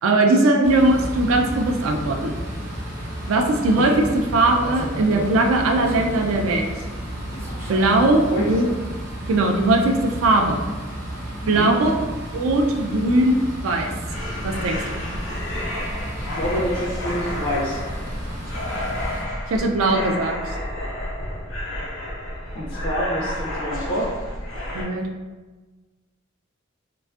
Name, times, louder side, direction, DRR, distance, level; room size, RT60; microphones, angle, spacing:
voice 1, 0.0-2.4 3.3-6.7 7.7-8.7 9.3-10.6 11.5-11.9 12.3-13.9 14.4-15.0 19.5-20.4 24.7-25.0, right 2 dB, 85° right, 3 dB, 0.4 m, -19 dB
sound 1, 0.6-19.2, equal, 60° right, 0.7 m, -33 dB
sound 2, 3.7-4.1 4.4-5.4 5.8-6.7 7.3-8.8, equal, 10° right, 0.4 m, -35 dB
voice 2, 11.4-11.7 16.2-17.8 22.5-24.1, equal, 50° left, -5 dB, 0.4 m, -27 dB
sound 3, 14.0-24.8, left 1 dB, 80° left, 0.7 m, -31 dB
2.4 x 2.3 x 2.4 m, 1.3 s
head